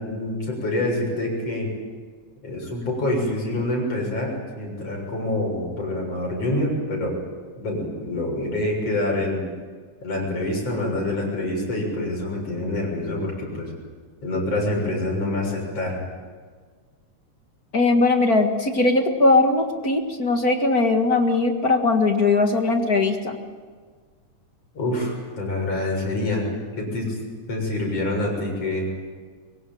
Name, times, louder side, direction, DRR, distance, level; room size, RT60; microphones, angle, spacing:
voice 1, 0.0-1.7 2.4-7.2 7.6-9.4 10.0-13.7 14.2-16.0 24.7-26.4 26.8-27.2 27.5-28.9, left 1 dB, 50° left, -1 dB, 7.9 m, -26 dB
voice 2, 17.7-23.4, left 3 dB, 35° left, 4 dB, 1.8 m, -20 dB
23.5 x 23.0 x 9.2 m, 1.5 s
omnidirectional pair, 3.4 m